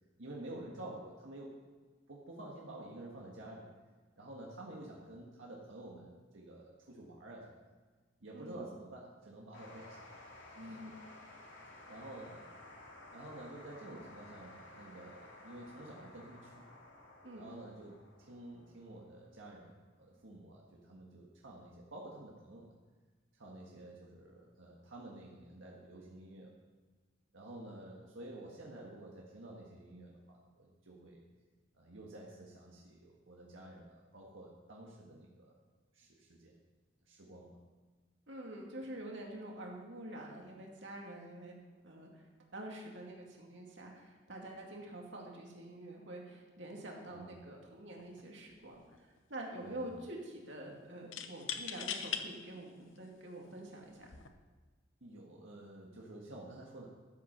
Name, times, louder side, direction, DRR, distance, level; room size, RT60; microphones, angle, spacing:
voice 1, 0.2-1.6 2.1-3.6 4.2-7.6 8.2-10.0 11.9-12.4 13.1-16.7 17.3-17.9 18.3-22.7 23.3-26.5 27.3-31.2 31.8-35.6 35.9-36.6 37.1-37.6 47.1-47.3 49.6-50.0 55.0-56.9, right 1 dB, 90° right, -2 dB, 1.7 m, -50 dB
voice 2, 8.3-8.7 10.6-10.9 17.2-17.4 38.3-41.6 41.8-42.2 42.5-48.8 49.3-54.1, right 1 dB, 65° right, 0 dB, 2.4 m, -47 dB
sound 1, 9.5-22.5, left 2 dB, 70° left, 3.0 m, -55 dB
sound 2, 48.0-48.2 48.5-49.2 51.1-52.2 53.0-53.1 54.0-54.3, left 8 dB, 90° left, 0.9 m, -40 dB
13.0 x 8.0 x 5.7 m, 1.4 s
head